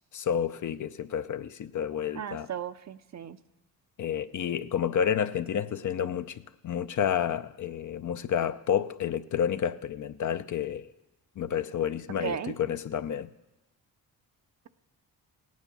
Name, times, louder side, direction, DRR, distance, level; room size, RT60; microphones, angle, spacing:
voice 1, 0.1-2.5 4.0-10.9 11.4-13.3, left 8 dB, 50° left, 0.7 m, -30 dB
voice 2, 2.1-3.4 12.2-12.5, right 8 dB, 45° right, 0.7 m, -35 dB
17.0 x 9.5 x 6.2 m
supercardioid pair, 65°, 37 cm